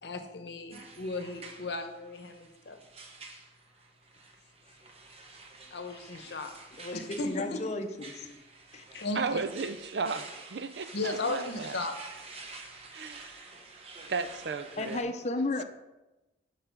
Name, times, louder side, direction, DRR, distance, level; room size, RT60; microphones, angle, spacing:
voice 1, 0.0-2.8 5.7-6.5 6.9-7.6 8.9-9.4 10.9-11.9, left 2 dB, 70° left, 7 dB, 0.8 m, -36 dB
sound 1, 0.7-15.0, right 3 dB, 35° right, 0.9 m, -49 dB
voice 2, 6.8-7.9 8.1-8.3 8.7-8.8 14.8-15.6, left 2 dB, 40° left, 7 dB, 0.6 m, -33 dB
voice 3, 9.1-11.8 12.9-13.4 14.1-15.1, right 4 dB, 75° right, 11 dB, 0.5 m, -34 dB
6.8 x 4.8 x 5.8 m, 1.0 s
head